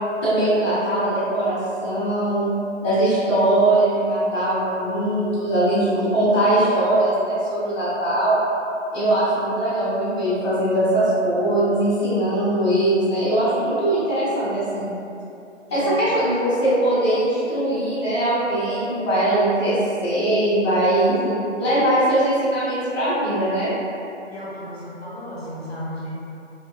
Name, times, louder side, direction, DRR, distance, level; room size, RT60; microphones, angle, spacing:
voice 1, 0.2-2.5 2.8-8.4 8.9-14.9 15.7-23.7, right 1 dB, 20° left, -17 dB, 0.5 m, -21 dB
voice 2, 24.3-26.1, equal, 55° left, -8 dB, 0.8 m, -34 dB
2.8 x 2.1 x 2.2 m, 2.7 s
figure-of-eight pair, 160°, 37 cm